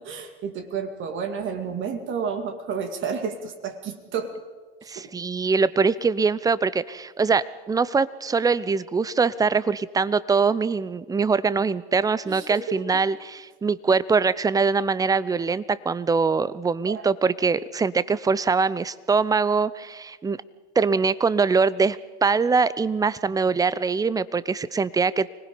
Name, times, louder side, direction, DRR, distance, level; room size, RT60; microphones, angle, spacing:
voice 1, 0.0-4.3 4.8-5.1 12.2-13.0 16.8-17.1, right 6 dB, 40° right, 7 dB, 2.3 m, -31 dB
voice 2, 4.9-20.4 20.8-25.3, right 4 dB, 10° right, 19 dB, 0.6 m, -23 dB
25.0 x 19.5 x 5.2 m, 1.4 s
hypercardioid pair, 85°, 31 cm